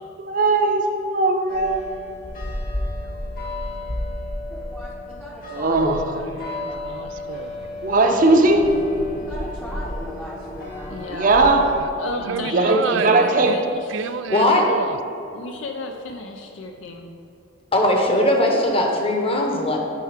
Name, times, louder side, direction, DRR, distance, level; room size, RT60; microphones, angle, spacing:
voice 1, 0.2-1.9 5.5-6.0 7.8-8.7 11.1-11.7 12.3-13.5, right 2 dB, 45° right, 3 dB, 0.7 m, -18 dB
sound 1, 1.5-11.8, left 1 dB, 45° left, 1.3 m, -32 dB
voice 2, 4.5-5.8 6.7-6.8 7.2-7.5 9.1-11.1, equal, 10° left, -5 dB, 0.7 m, -38 dB
voice 3, 5.6-7.6 11.8-13.6 13.9-15.0, right 6 dB, 70° right, 13 dB, 0.3 m, -31 dB
voice 4, 10.9-11.5 12.0-14.8 15.3-17.1, left 3 dB, 70° left, 3 dB, 0.5 m, -34 dB
voice 5, 14.3-14.7 17.7-19.8, left 1 dB, 30° left, 1 dB, 0.9 m, -19 dB
7.7 x 4.6 x 5.0 m, 2.7 s
head